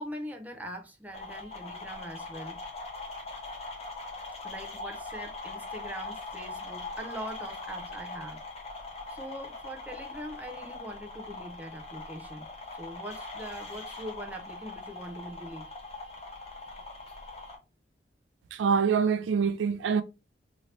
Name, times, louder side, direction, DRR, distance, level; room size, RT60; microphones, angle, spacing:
voice 1, 0.0-2.6 4.4-8.4 9.1-15.7, equal, 10° right, 0.5 m, -42 dB
sound 1, 1.1-17.6, left 3 dB, 35° left, 0.9 m, -41 dB
voice 2, 18.5-20.0, right 6 dB, 75° right, 0.3 m, -25 dB
2.8 x 2.7 x 3.1 m
head